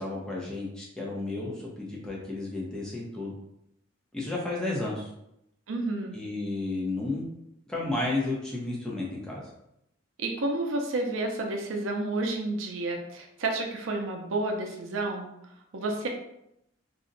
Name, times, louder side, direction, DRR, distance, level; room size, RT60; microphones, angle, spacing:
voice 1, 0.0-3.3 4.1-5.1 6.1-7.2 7.7-9.5, left 2 dB, 5° left, -4 dB, 0.7 m, -32 dB
voice 2, 5.7-6.2 10.2-15.3 15.7-16.1, right 2 dB, 90° right, 2 dB, 0.5 m, -30 dB
2.6 x 2.1 x 3.8 m, 0.80 s
head